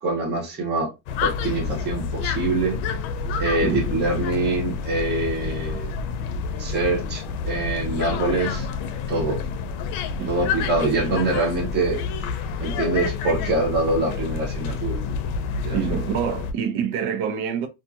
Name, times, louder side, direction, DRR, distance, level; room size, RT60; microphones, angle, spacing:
voice 1, 0.0-0.9 1.2-2.8 3.4-5.9 6.6-8.7 9.1-9.4 10.3-12.0 12.6-15.0 15.6-16.0, right 2 dB, 20° right, 0.7 m, -24 dB
sound 1, 1.1-16.5, left 5 dB, 70° left, 0.6 m, -28 dB
voice 2, 15.7-17.7, right 8 dB, 80° right, 0.7 m, -26 dB
2.7 x 2.4 x 2.3 m
cardioid pair, 160°, 50 cm